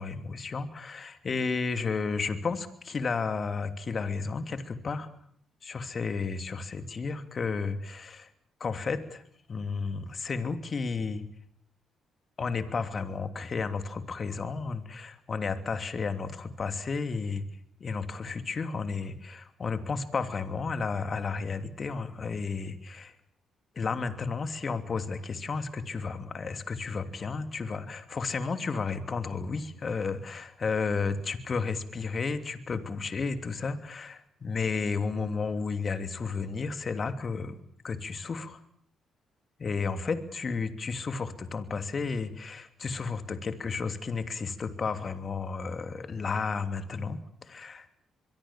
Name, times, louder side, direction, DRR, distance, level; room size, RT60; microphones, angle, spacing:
voice 1, 0.0-5.1 5.6-8.3 8.6-9.2 9.5-11.2 12.4-17.4 17.8-23.1 23.7-37.6 37.8-38.6 39.6-47.9, left 4 dB, 45° left, 9 dB, 3.0 m, -32 dB
24.5 x 23.5 x 7.5 m, 0.65 s
supercardioid pair, 55°, 0 cm